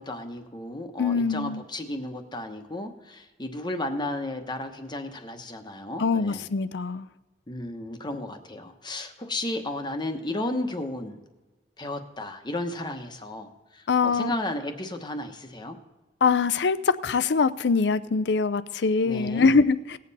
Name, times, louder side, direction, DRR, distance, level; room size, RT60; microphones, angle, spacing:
voice 1, 0.0-6.5 7.5-11.2 11.8-15.8 19.0-19.5, left 1 dB, 25° left, 6 dB, 1.0 m, -33 dB
voice 2, 1.0-1.6 6.0-7.1 13.9-14.3 16.2-20.0, left 4 dB, 75° left, 15 dB, 0.5 m, -23 dB
19.0 x 7.6 x 4.1 m, 1.2 s
head